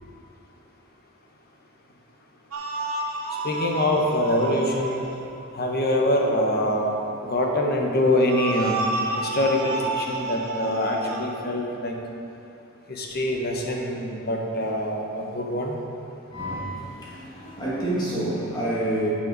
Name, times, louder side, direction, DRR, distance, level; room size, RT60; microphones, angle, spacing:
sound 1, 2.5-5.2 8.2-11.2, right 3 dB, 80° right, 1.2 m, -30 dB
voice 1, 3.4-5.0 5.5-7.0 7.2-8.7 9.2-11.9 12.9-15.8, left 1 dB, 45° left, 1 dB, 1.1 m, -24 dB
voice 2, 16.3-19.1, right 1 dB, 20° left, -7 dB, 2.0 m, -28 dB
11.5 x 7.5 x 4.1 m, 2.6 s
head